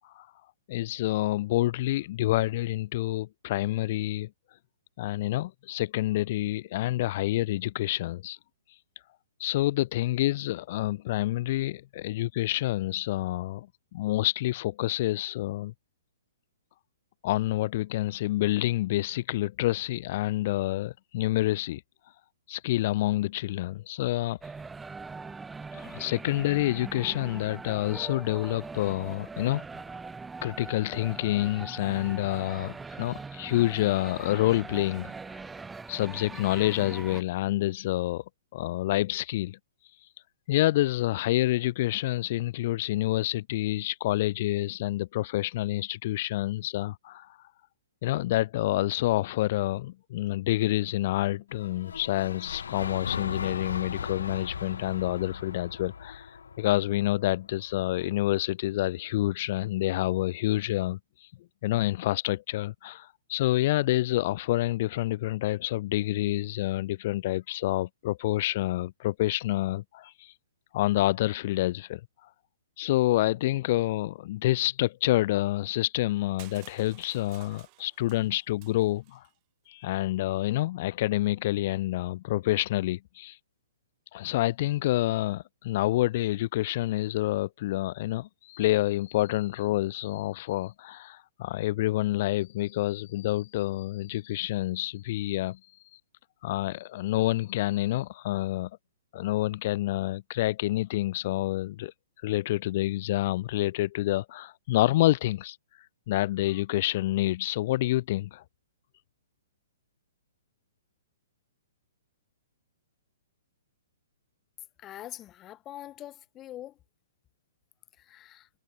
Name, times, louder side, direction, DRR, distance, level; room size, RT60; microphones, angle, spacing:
voice 1, 0.7-4.3 5.0-8.4 8.7-8.8 9.4-13.7 13.9-15.7 17.2-21.8 22.5-24.4 25.7-29.6 30.4-35.4 35.9-38.2 38.5-39.6 40.0-40.1 40.5-47.4 48.0-61.3 61.6-70.3 70.7-72.3 72.8-79.3 79.7-83.4 84.1-95.6 95.9-96.0 96.4-98.7 99.1-101.9 102.2-105.6 106.1-108.4, left 16 dB, 45° left, 1.0 m, -28 dB
sound 1, 24.4-37.2, right 4 dB, 10° right, 1.0 m, -41 dB
sound 2, 51.5-57.7, left 6 dB, 65° left, 5.3 m, -38 dB
Crushing, 76.4-79.3, right 35 dB, 35° right, 5.0 m, -54 dB
voice 2, 114.8-116.7 118.0-118.5, left 13 dB, 25° left, 1.5 m, -44 dB
figure-of-eight pair, 120°, 0 cm